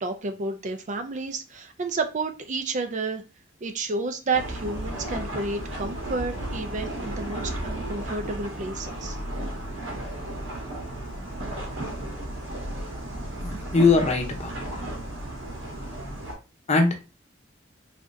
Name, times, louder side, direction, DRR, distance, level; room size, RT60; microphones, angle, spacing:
voice 1, 0.0-3.2 3.6-9.2, right 3 dB, 40° right, 6 dB, 0.5 m, -31 dB
sound 1, 4.3-16.3, right 1 dB, 85° right, 1.3 m, -34 dB
voice 2, 13.4-14.6 16.7-17.1, left 3 dB, 35° left, 3 dB, 0.8 m, -21 dB
3.6 x 3.3 x 2.6 m, 0.30 s
head